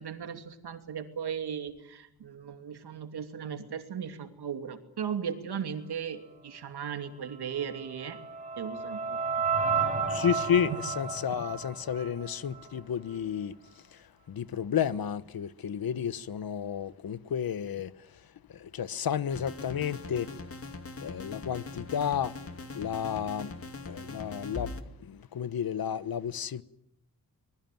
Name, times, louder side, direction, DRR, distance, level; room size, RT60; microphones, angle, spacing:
voice 1, 0.0-8.2 8.5-9.2 10.7-10.8, right 7 dB, 85° right, 2.8 m, -37 dB
sound 1, 7.6-12.8, right 5 dB, 20° right, 6.2 m, -32 dB
voice 2, 10.1-13.6 13.9-17.9 18.5-20.3 21.0-22.3 22.7-23.5 23.8-24.7 25.0-26.6, left 8 dB, 65° left, 1.2 m, -31 dB
sound 2, 19.3-24.8, left 3 dB, 35° left, 2.3 m, -41 dB
25.0 x 21.0 x 9.3 m
wide cardioid pair, 115°, 38 cm